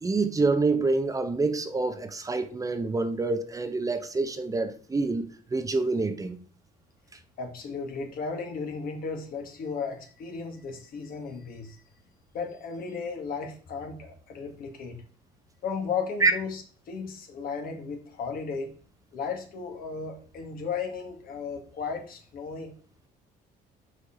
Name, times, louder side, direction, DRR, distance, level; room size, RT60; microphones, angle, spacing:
voice 1, 0.0-6.4 16.2-16.3, right 3 dB, 20° right, 0.7 m, -27 dB
voice 2, 7.4-11.8 12.3-14.9 15.6-18.7 19.1-22.7, left 5 dB, 60° left, 1.5 m, -35 dB
4.9 x 4.3 x 4.9 m
cardioid pair, 110°, 17 cm